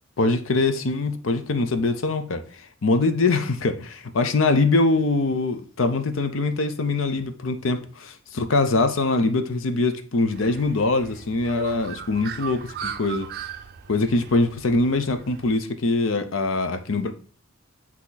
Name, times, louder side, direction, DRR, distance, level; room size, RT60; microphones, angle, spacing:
voice 1, 0.2-2.4 2.8-13.3 13.9-17.1, left 3 dB, 75° left, 0.7 m, -23 dB
Bird, 10.3-15.5, right 7 dB, 50° right, 0.4 m, -38 dB
8.3 x 3.0 x 3.9 m
head